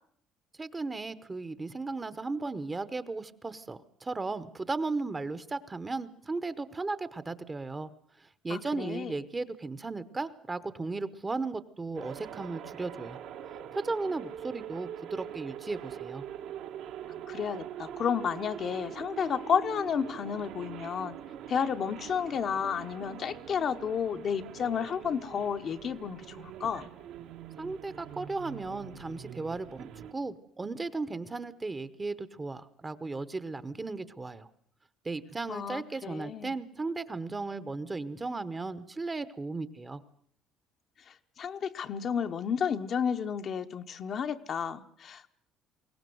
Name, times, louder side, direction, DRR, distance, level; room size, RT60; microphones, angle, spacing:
voice 1, 0.6-7.9 8.2-13.2 13.7-16.2 27.6-34.5 35.0-40.0, right 3 dB, 15° right, 14 dB, 0.9 m, -36 dB
voice 2, 8.5-9.1 17.3-21.2 21.5-26.9 35.5-36.5 41.1-45.3, left 7 dB, 40° left, 7 dB, 0.9 m, -32 dB
sound 1, 11.9-30.1, right 9 dB, 70° right, 1.7 m, -43 dB
22.0 x 18.5 x 7.8 m, 0.63 s
cardioid pair, 145°, 0 cm